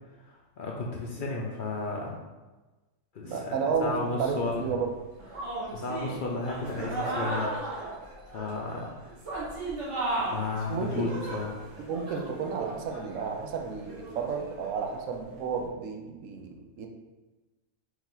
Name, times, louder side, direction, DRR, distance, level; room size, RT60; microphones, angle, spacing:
voice 1, 0.3-2.2 3.1-4.7 5.4-7.5 8.3-9.0 10.3-11.5, left 3 dB, 55° left, -1 dB, 0.6 m, -33 dB
voice 2, 3.2-4.9 10.7-11.1 11.9-16.9, right 5 dB, 85° right, 3 dB, 1.0 m, -32 dB
sound 1, 3.7-3.8 4.5-4.6 5.2-15.0, right 2 dB, 70° right, 1.5 m, -36 dB
4.5 x 2.7 x 3.8 m, 1.2 s
omnidirectional pair, 1.3 m